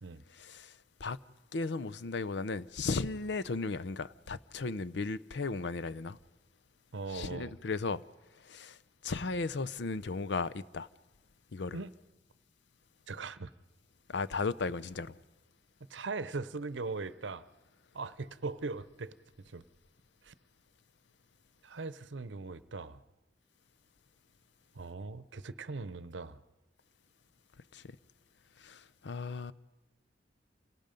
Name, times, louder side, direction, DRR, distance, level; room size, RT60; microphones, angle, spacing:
voice 1, 0.3-1.2 1.5-6.2 7.1-8.0 8.4-8.8 9.0-10.9 11.5-11.8 14.1-15.2 27.7-28.0 28.6-29.5, left 4 dB, 70° left, 0.6 m, -36 dB
voice 2, 6.9-7.5 11.7-11.9 13.1-13.5 15.9-17.5 17.9-19.2 19.5-19.6 20.2-20.3 21.6-23.0 24.7-26.4, right 3 dB, 85° right, 0.8 m, -40 dB
27.5 x 18.5 x 5.2 m
head